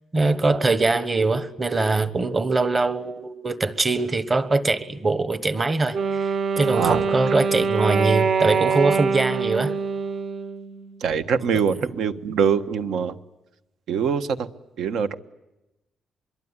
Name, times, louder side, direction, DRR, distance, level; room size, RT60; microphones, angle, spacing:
voice 1, 0.1-6.0 6.6-9.7, right 3 dB, 20° right, 1.2 m, -22 dB
Wind instrument woodwind instrument, 5.9-11.0, right 5 dB, 40° right, 0.9 m, -24 dB
voice 2, 11.0-13.2 13.9-14.5 14.8-15.1, right 7 dB, 70° right, 1.3 m, -23 dB
25.0 x 22.5 x 9.8 m
cardioid pair, 165°, 0 cm